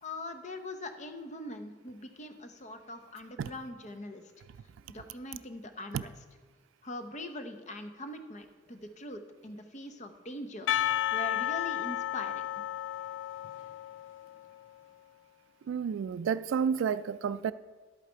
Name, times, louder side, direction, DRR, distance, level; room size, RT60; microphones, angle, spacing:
voice 1, 0.0-4.2 4.9-6.1 6.8-10.7 11.1-12.5, left 1 dB, 40° left, 0.8 m, -42 dB
Percussion, 10.7-14.6, left 12 dB, 70° left, 0.4 m, -33 dB
voice 2, 15.7-17.5, right 7 dB, 85° right, 0.3 m, -30 dB
11.0 x 8.2 x 4.5 m
head